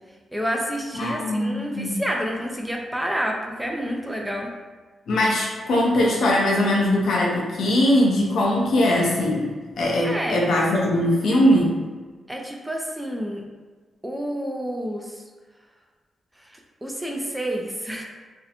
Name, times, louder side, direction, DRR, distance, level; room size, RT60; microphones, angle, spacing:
voice 1, 0.3-4.5 10.0-10.4 12.3-13.5 14.0-15.1 16.8-18.0, equal, 5° right, 0 dB, 0.3 m, -29 dB
voice 2, 1.0-2.0 5.1-9.5 9.8-11.7, left 1 dB, 80° left, -3 dB, 0.6 m, -21 dB
2.5 x 2.0 x 2.7 m, 1.4 s
wide cardioid pair, 120°, 0 cm